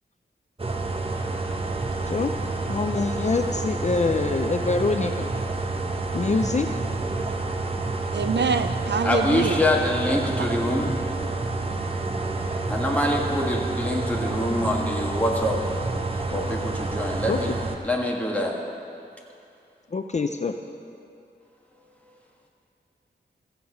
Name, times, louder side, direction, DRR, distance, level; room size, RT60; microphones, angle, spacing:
sound 1, 0.6-17.8, right 3 dB, 30° right, 0.9 m, -29 dB
voice 1, 2.7-5.3 6.1-6.7 17.3-17.4 19.9-20.6, left 4 dB, 40° left, 6 dB, 0.5 m, -25 dB
voice 2, 8.1-9.6, right 5 dB, 70° right, 10 dB, 0.5 m, -25 dB
voice 3, 9.0-10.9 12.7-15.6 16.3-17.5 17.8-18.5, left 1 dB, 10° left, -2 dB, 1.6 m, -25 dB
15.0 x 7.9 x 5.7 m, 2.5 s
wide cardioid pair, 105°, 19 cm